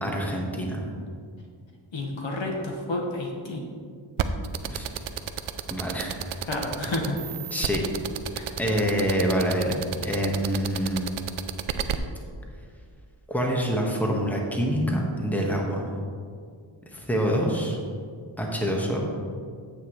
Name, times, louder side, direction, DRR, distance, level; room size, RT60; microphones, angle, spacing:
voice 1, 0.0-0.8 4.6-4.9 5.7-6.5 7.5-7.8 8.6-9.7 10.0-11.2 13.3-15.9 16.8-17.8 18.4-19.1, equal, 5° left, -1 dB, 1.4 m, -26 dB
voice 2, 1.9-3.6 6.5-7.2 8.3-8.6, left 2 dB, 65° left, 0 dB, 1.5 m, -30 dB
sound 1, 4.2-11.9, right 9 dB, 90° right, 0.6 m, -30 dB
9.1 x 8.5 x 3.2 m, 2.1 s
wide cardioid pair, 75°, 48 cm